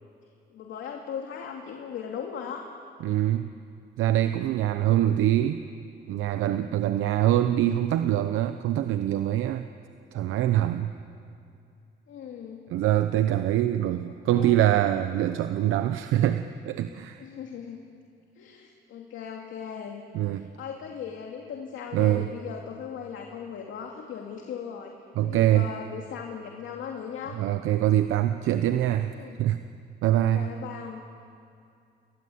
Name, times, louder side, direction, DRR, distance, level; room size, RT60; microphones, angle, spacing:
voice 1, 0.5-2.7 4.8-5.2 12.1-12.6 14.0-14.6 17.2-17.8 18.4-20.0 20.3-24.9 25.2-27.4 29.1-29.4 30.1-31.0, left 7 dB, 75° left, 1 dB, 2.6 m, -38 dB
voice 2, 3.0-3.5 4.0-5.6 6.1-9.7 10.1-10.9 12.7-17.2 20.1-20.5 21.9-22.3 25.2-25.7 27.3-29.1 29.4-29.6 30.0-30.5, right 12 dB, 90° right, 9 dB, 0.8 m, -24 dB
30.0 x 22.5 x 8.7 m, 2.5 s
cardioid pair, 90°, 20 cm